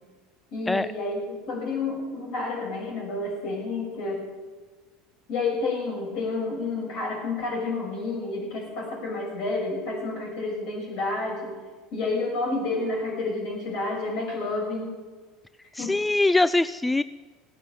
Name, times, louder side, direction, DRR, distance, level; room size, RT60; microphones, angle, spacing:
voice 1, 0.5-4.3 5.3-11.5 11.9-14.9 15.8-16.0, left 3 dB, 60° left, -1 dB, 6.5 m, -30 dB
voice 2, 15.7-17.0, left 2 dB, 10° left, 16 dB, 0.3 m, -22 dB
16.0 x 9.4 x 7.5 m, 1.3 s
hypercardioid pair, 75°, 0 cm